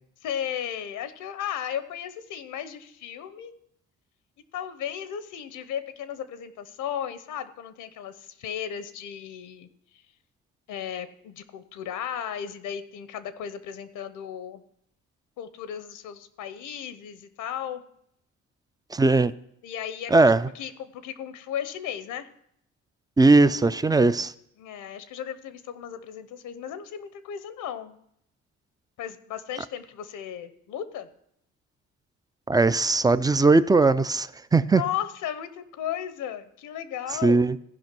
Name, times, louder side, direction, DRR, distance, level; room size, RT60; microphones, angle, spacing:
voice 1, 0.2-3.5 4.5-9.7 10.7-14.6 15.4-17.8 19.6-22.3 24.6-28.0 29.0-31.1 34.7-37.5, left 9 dB, 85° left, 12 dB, 0.8 m, -35 dB
voice 2, 18.9-19.3 20.1-20.5 23.2-24.3 32.5-34.8 37.2-37.6, right 3 dB, 15° right, 15 dB, 0.3 m, -19 dB
14.5 x 5.3 x 6.0 m, 0.74 s
cardioid pair, 90°, 30 cm